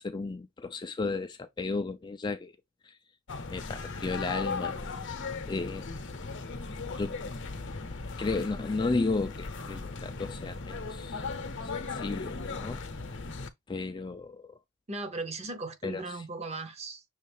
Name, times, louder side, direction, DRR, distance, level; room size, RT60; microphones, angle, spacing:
voice 1, 0.0-2.6 2.8-3.0 3.5-4.7 5.0-5.9 7.0-7.1 8.2-11.3 11.6-12.8 13.7-14.6 15.8-16.2, left 3 dB, 20° left, 0.3 m, -34 dB
sound 1, 3.3-13.5, left 4 dB, 55° left, 0.7 m, -37 dB
voice 2, 14.9-17.0, right 3 dB, 30° right, 0.7 m, -37 dB
6.4 x 2.4 x 3.4 m
head